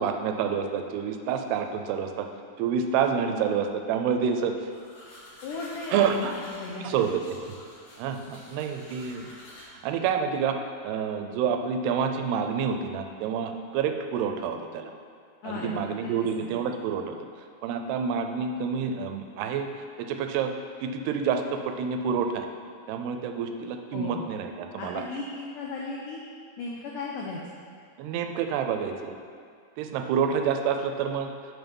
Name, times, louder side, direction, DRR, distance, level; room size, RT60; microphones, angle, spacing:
voice 1, 0.0-2.3 2.6-4.5 5.9-6.3 6.8-7.4 8.0-9.3 9.8-14.9 15.4-17.2 17.6-19.7 20.0-20.5 20.8-22.5 22.9-25.0 28.0-29.2 29.8-31.3, right 7 dB, 90° right, 6 dB, 2.6 m, -28 dB
sound 1, 4.7-9.6, left 1 dB, 60° left, 3.1 m, -49 dB
voice 2, 5.4-7.2 15.4-16.5 23.9-24.3 24.8-26.2 26.6-27.4, left 3 dB, 90° left, -3 dB, 1.8 m, -36 dB
7.4 x 5.9 x 5.3 m, 2.2 s
omnidirectional pair, 4.6 m